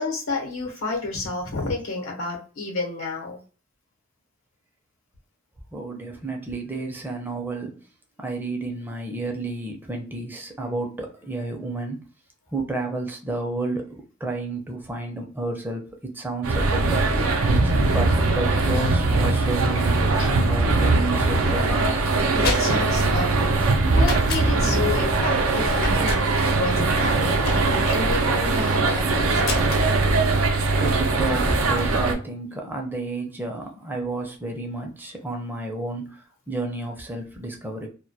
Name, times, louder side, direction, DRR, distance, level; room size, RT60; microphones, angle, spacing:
voice 1, 0.0-3.4 20.2-20.3 22.3-29.6, left 3 dB, 80° left, 0 dB, 0.8 m, -30 dB
voice 2, 5.7-7.8 8.2-12.0 12.5-21.9 30.5-37.9, right 2 dB, 10° right, 2 dB, 0.4 m, -31 dB
sound 1, 16.4-32.1, right 3 dB, 90° right, 0.5 m, -21 dB
sound 2, 22.4-23.0 24.0-24.5 25.8-26.2 27.4-28.0 29.4-29.9, left 2 dB, 50° left, 0.6 m, -29 dB
2.2 x 2.2 x 2.6 m, 0.36 s
head